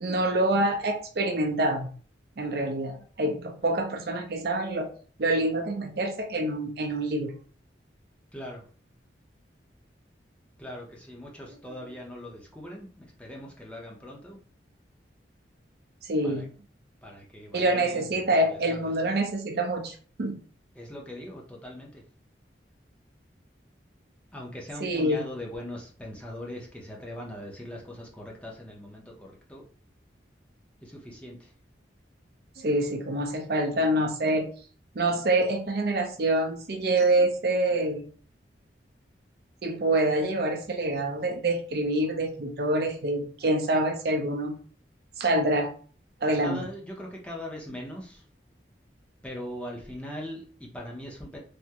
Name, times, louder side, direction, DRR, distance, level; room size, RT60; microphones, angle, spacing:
voice 1, 0.0-1.9 2.4-4.9 5.2-7.3 16.0-16.5 17.5-20.4 24.8-25.2 32.6-34.5 34.9-38.0 39.6-44.5 45.2-45.7 46.2-46.6, right 1 dB, 55° right, 3 dB, 0.5 m, -26 dB
voice 2, 8.3-8.7 10.6-14.4 16.2-16.5 17.0-18.1 18.4-19.1 20.7-22.0 24.3-29.6 30.8-31.5 46.3-48.3 49.2-51.4, left 1 dB, 5° left, -2 dB, 0.6 m, -41 dB
3.4 x 2.0 x 2.8 m, 0.41 s
head